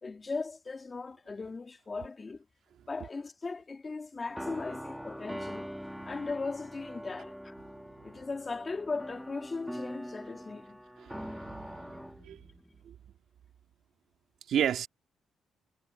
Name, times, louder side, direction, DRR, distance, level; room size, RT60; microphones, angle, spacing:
voice 1, 0.0-2.4 2.9-5.7 6.1-7.5 8.0-10.8, left 3 dB, 30° left, 2.4 m, -38 dB
sound 1, 4.3-12.8, equal, ahead, 1.6 m, -43 dB
voice 2, 11.0-11.8 12.2-12.4 12.9-13.0 14.5-14.9, right 9 dB, 70° right, 2.2 m, -32 dB
cardioid pair, 90°, 0 cm